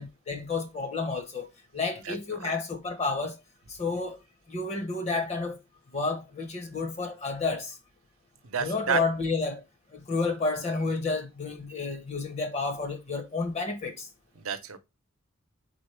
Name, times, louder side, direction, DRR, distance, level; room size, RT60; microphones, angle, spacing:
voice 1, 0.0-3.4 3.7-4.2 4.5-5.6 5.9-7.8 8.6-9.6 9.9-14.1, left 3 dB, 30° left, 0.7 m, -31 dB
voice 2, 2.0-2.6 8.4-9.0 14.4-14.8, right 6 dB, 90° right, 0.7 m, -31 dB
4.1 x 3.8 x 3.2 m
head